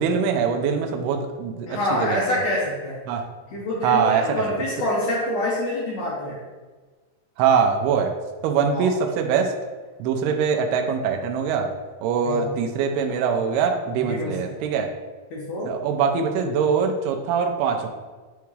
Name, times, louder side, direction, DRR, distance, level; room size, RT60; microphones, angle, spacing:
voice 1, 0.0-2.4 3.1-3.3 3.8-4.4 7.4-8.1 8.4-9.5 10.0-11.7 12.0-14.9 15.7-17.9, right 6 dB, 85° right, 4 dB, 2.6 m, -23 dB
voice 2, 1.7-3.0 3.5-6.4 8.7-8.9 12.2-12.5 14.0-14.5 15.3-15.7, left 1 dB, 65° left, -5 dB, 2.1 m, -26 dB
9.1 x 3.5 x 3.2 m, 1.3 s
omnidirectional pair, 4.6 m